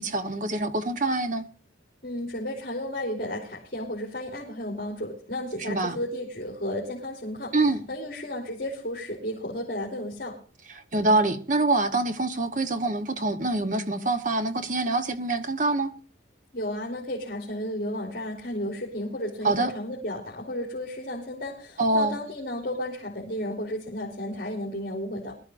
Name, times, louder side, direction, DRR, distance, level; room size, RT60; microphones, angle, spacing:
voice 1, 0.0-1.5 5.6-6.0 7.5-7.8 10.7-15.9 19.4-19.7 21.8-22.2, right 2 dB, 40° right, 1.0 m, -25 dB
voice 2, 2.0-10.4 16.5-25.4, left 1 dB, 50° left, 3.0 m, -33 dB
22.5 x 13.0 x 2.5 m
head